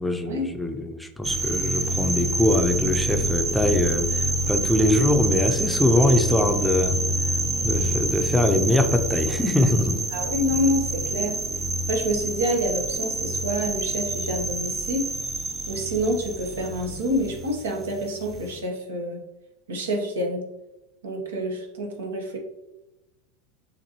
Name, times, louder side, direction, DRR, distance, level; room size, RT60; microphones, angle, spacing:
voice 1, 0.0-7.0 7.6-10.0, left 1 dB, 5° left, 5 dB, 0.5 m, -23 dB
sound 1, 1.2-18.6, right 1 dB, 25° right, 0.9 m, -27 dB
voice 2, 10.1-11.4 11.9-15.1 15.7-19.2 19.7-20.5 21.0-22.4, equal, 85° right, 1 dB, 1.0 m, -27 dB
6.8 x 2.6 x 2.9 m, 0.96 s
hypercardioid pair, 95°, 0 cm